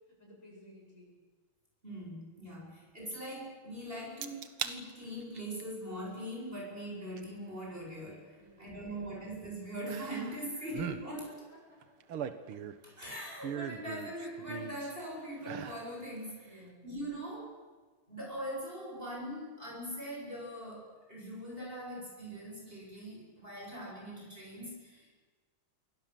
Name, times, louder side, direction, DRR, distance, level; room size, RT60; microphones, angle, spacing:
voice 1, 0.2-1.2 2.6-2.8 8.3-9.3 10.4-10.7 11.3-12.0 13.2-13.3 16.4-16.9, equal, 35° left, -2 dB, 8.5 m, -57 dB
voice 2, 1.8-8.3 8.6-11.3 12.8-17.5 18.1-25.1, equal, 25° right, -2 dB, 8.1 m, -41 dB
sound 1, 4.2-4.8 5.2-5.6 7.2-7.3 9.9-10.4 10.7-11.0 11.8-12.9 13.4-14.9 15.4-15.9 16.3-16.4, right 8 dB, 85° right, 2.3 m, -40 dB
28.5 x 23.5 x 7.7 m, 1.3 s
omnidirectional pair, 2.3 m